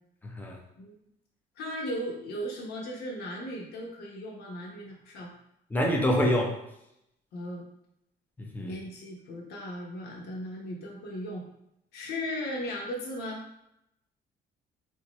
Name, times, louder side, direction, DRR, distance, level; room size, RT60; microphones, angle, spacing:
voice 1, 0.2-0.6 5.7-6.6 8.4-8.7, equal, 10° left, 1 dB, 0.7 m, -26 dB
voice 2, 1.6-5.3 7.3-7.7 8.6-11.4 11.9-13.4, equal, 70° left, -2 dB, 1.2 m, -37 dB
4.1 x 2.8 x 3.1 m, 0.80 s
cardioid pair, 110°, 17 cm